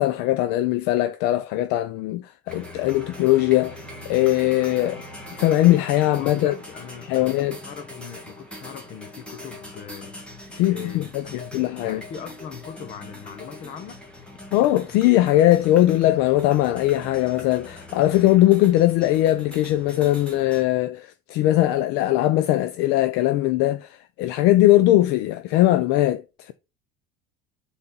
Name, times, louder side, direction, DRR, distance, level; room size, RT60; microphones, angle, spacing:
voice 1, 0.0-3.8 4.1-5.0 5.4-6.5 7.1-7.6 10.5-11.2 11.5-12.0 14.5-26.5, left 15 dB, 60° left, 0.5 m, -20 dB
sound 1, 2.5-20.6, left 1 dB, 5° left, 1.4 m, -41 dB
voice 2, 6.1-10.2 10.7-14.0, left 7 dB, 40° left, 1.0 m, -40 dB
6.9 x 3.9 x 3.9 m
cardioid pair, 180°, 20 cm